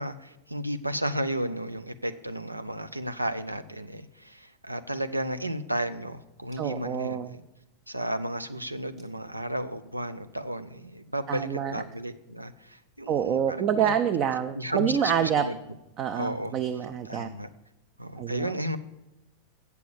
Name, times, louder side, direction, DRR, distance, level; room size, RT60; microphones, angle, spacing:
voice 1, 0.0-7.4 7.9-13.9 14.5-15.8 16.1-16.5 17.0-17.5 18.0-18.8, right 1 dB, 85° right, 11 dB, 0.5 m, -33 dB
voice 2, 6.6-7.3 11.3-11.8 13.1-15.4 16.0-17.3 18.2-18.5, right 8 dB, 35° right, 9 dB, 0.5 m, -27 dB
8.1 x 6.9 x 7.1 m, 0.91 s
figure-of-eight pair, 90°, 0 cm